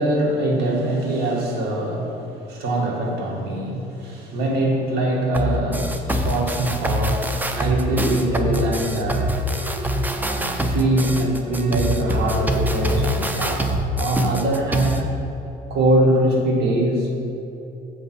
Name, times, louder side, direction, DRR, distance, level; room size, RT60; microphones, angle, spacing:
voice 1, 0.0-9.3 10.1-15.0 15.7-17.1, right 1 dB, 75° right, -1 dB, 1.7 m, -23 dB
sound 1, 5.3-15.0, equal, 10° right, 0.5 m, -24 dB
sound 2, 7.5-13.8, right 1 dB, 45° right, 1.0 m, -38 dB
7.6 x 5.0 x 5.9 m, 3.0 s
cardioid pair, 110°, 17 cm